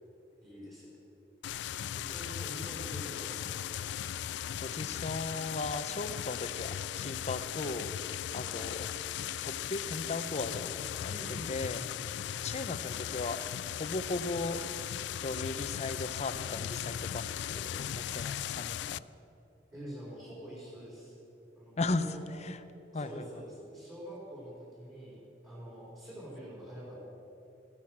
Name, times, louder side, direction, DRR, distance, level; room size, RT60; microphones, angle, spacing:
voice 1, 0.4-0.9 1.9-3.8 8.4-8.6 11.1-11.8 19.7-21.1 21.5-22.3 22.9-27.0, right 1 dB, 20° right, -7 dB, 4.3 m, -46 dB
sound 1, 1.4-19.0, left 11 dB, 70° left, 0.3 m, -38 dB
voice 2, 4.6-7.9 8.3-8.9 9.4-10.7 11.0-11.1 11.5-11.8 12.4-14.6 15.2-19.0 21.8-22.1 22.4-22.6 22.9-23.2, left 3 dB, 40° left, 11 dB, 0.6 m, -37 dB
14.5 x 13.5 x 6.0 m, 2.9 s
head